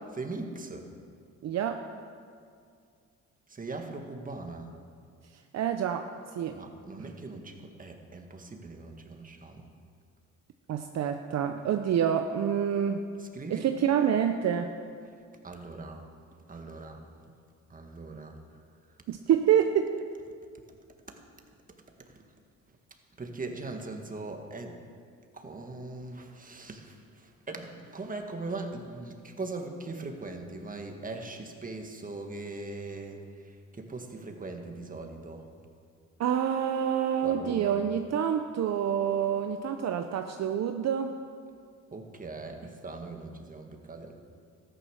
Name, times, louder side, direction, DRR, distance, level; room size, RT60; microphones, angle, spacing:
voice 1, 0.2-0.9 3.5-4.7 6.5-9.7 13.2-13.7 15.4-16.0 16.5-17.0 17.7-18.4 23.2-24.8 25.3-35.4 37.2-37.8 41.9-44.1, right 3 dB, 25° right, 4 dB, 1.7 m, -40 dB
voice 2, 1.4-1.8 5.5-6.6 7.0-7.1 10.7-13.0 13.5-14.7 19.1-19.9 36.2-41.1, right 9 dB, 60° right, 6 dB, 0.7 m, -27 dB
14.0 x 9.6 x 6.3 m, 2.3 s
cardioid pair, 90°, 30 cm